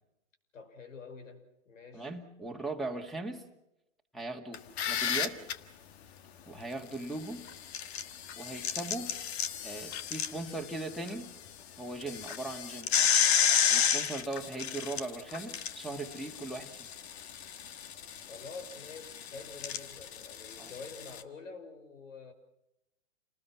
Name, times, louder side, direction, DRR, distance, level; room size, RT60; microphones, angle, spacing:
voice 1, 0.5-2.1 18.3-22.3, left 4 dB, 80° left, 7 dB, 5.8 m, -47 dB
voice 2, 1.9-3.4 4.1-5.4 6.5-7.5 8.4-9.1 9.6-11.3 11.8-12.9 13.7-16.9 20.6-20.7, right 2 dB, ahead, -1 dB, 2.0 m, -39 dB
sound 1, 4.5-5.5 7.5-11.1 11.5-11.6 12.0-21.2, left 8 dB, 55° left, 1.7 m, -32 dB
28.5 x 20.0 x 6.0 m, 0.87 s
hypercardioid pair, 135°, 38 cm